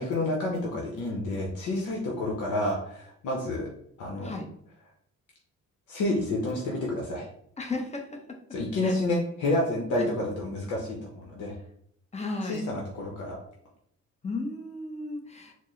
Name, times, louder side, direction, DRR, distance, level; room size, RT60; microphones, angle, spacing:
voice 1, 0.0-3.7 4.0-4.3 5.9-7.3 8.5-11.5 12.4-13.4, left 1 dB, 75° left, -2 dB, 0.9 m, -29 dB
voice 2, 7.6-8.0 8.8-8.9 10.0-10.1 12.1-12.7 14.2-15.5, left 3 dB, 20° left, 2 dB, 0.8 m, -34 dB
4.2 x 2.1 x 3.1 m, 0.68 s
cardioid pair, 90°, 30 cm